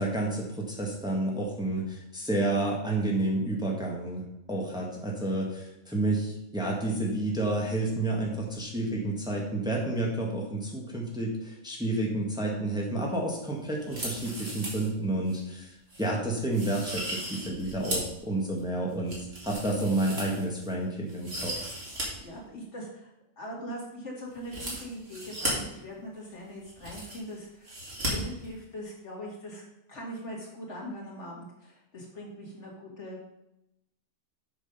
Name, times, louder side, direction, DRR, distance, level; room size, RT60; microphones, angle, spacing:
voice 1, 0.0-4.2 4.5-21.5, right 2 dB, 5° right, -2 dB, 1.5 m, -30 dB
sound 1, 13.8-14.9 15.3-15.4 15.9-16.1 16.5-18.2 18.6-20.7 21.1-22.1 22.3-22.4 24.4-25.5 26.3-26.4 26.6-27.3 27.6-28.1 28.4-28.5, right 1 dB, 55° right, 2.8 m, -36 dB
voice 2, 22.2-23.1 23.4-27.8 28.1-33.2, equal, 65° left, -3 dB, 2.5 m, -41 dB
7.4 x 6.1 x 5.5 m, 0.86 s
omnidirectional pair, 1.3 m